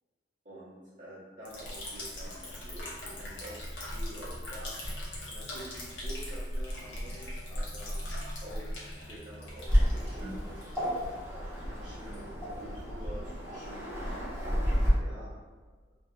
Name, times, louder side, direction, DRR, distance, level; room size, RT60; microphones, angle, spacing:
voice 1, 0.4-4.8 5.3-8.0 8.4-8.7 9.0-10.6 11.6-14.2 15.0-15.3, right 1 dB, 45° right, -13 dB, 0.9 m, -48 dB
Liquid, 1.5-13.9, equal, 75° left, 0.8 m, -40 dB
Waves surf, 9.7-14.9, equal, 15° right, 0.9 m, -31 dB
2.8 x 2.6 x 2.3 m, 1.4 s
head